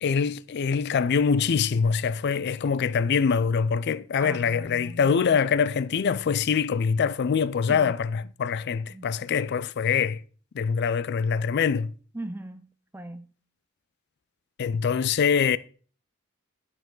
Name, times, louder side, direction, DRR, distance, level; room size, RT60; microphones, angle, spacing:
voice 1, 0.0-10.2 10.5-11.9 14.6-15.6, left 6 dB, 50° left, 0.4 m, -24 dB
voice 2, 4.2-5.2 7.7-7.9 8.9-9.1 12.1-13.3, right 1 dB, 10° right, 0.5 m, -39 dB
11.5 x 4.9 x 3.8 m
head